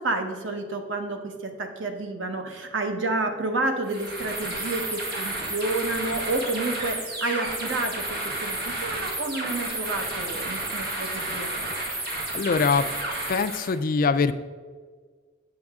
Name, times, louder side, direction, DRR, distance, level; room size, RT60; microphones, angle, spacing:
voice 1, 0.0-11.5, right 2 dB, 90° right, 5 dB, 1.0 m, -30 dB
sound 1, 3.8-13.8, right 2 dB, 60° right, 1.7 m, -31 dB
voice 2, 12.3-12.9 13.3-14.4, left 4 dB, 50° left, 11 dB, 0.4 m, -23 dB
7.7 x 7.6 x 3.6 m, 1.5 s
head